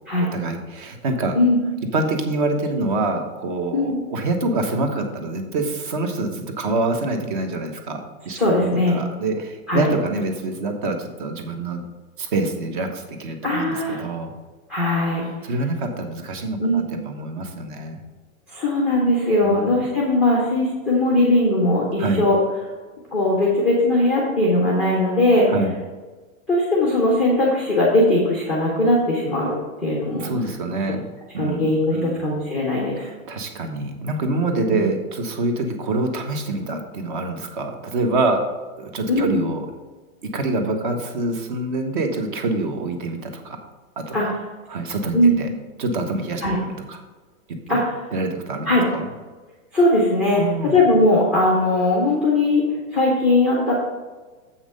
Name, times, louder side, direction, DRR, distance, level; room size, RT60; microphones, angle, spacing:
voice 1, 0.3-1.3 1.9-8.0 8.2-11.8 12.2-14.3 15.2-18.0 19.4-19.7 22.0-22.2 25.5-25.7 30.2-31.0 31.3-32.2 33.3-38.4 38.8-39.7 40.2-43.6 44.0-44.3 44.7-45.5 45.8-46.4 46.9-47.0 47.5-47.8 48.1-48.7 48.9-49.1 50.3-50.7, right 2 dB, 35° right, 5 dB, 1.1 m, -26 dB
voice 2, 8.3-9.0 9.7-9.9 13.4-14.0 14.7-15.2 16.6-16.9 18.5-22.4 23.1-25.5 26.5-30.3 31.4-33.1 34.7-34.9 39.1-39.4 44.1-44.2 45.1-45.4 46.4-46.6 47.7-47.9 48.7-48.8 49.7-52.6 52.9-53.7, left 1 dB, ahead, -4 dB, 0.6 m, -19 dB
7.4 x 5.8 x 5.3 m, 1.3 s
supercardioid pair, 170°, 43 cm